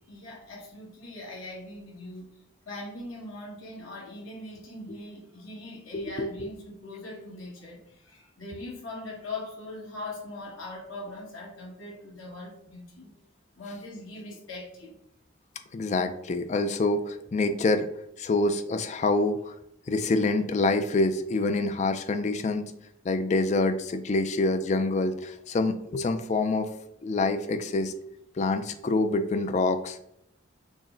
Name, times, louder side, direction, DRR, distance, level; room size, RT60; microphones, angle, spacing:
voice 1, 0.0-2.4 2.6-13.1 13.6-15.0 25.3-25.4, left 2 dB, 75° left, -3 dB, 1.5 m, -41 dB
voice 2, 5.9-6.3 15.7-17.9 18.2-19.5 19.9-22.7 23.1-26.7 27.0-27.9 28.4-30.0, left 2 dB, 35° left, 8 dB, 0.3 m, -26 dB
6.1 x 2.1 x 3.8 m, 0.77 s
head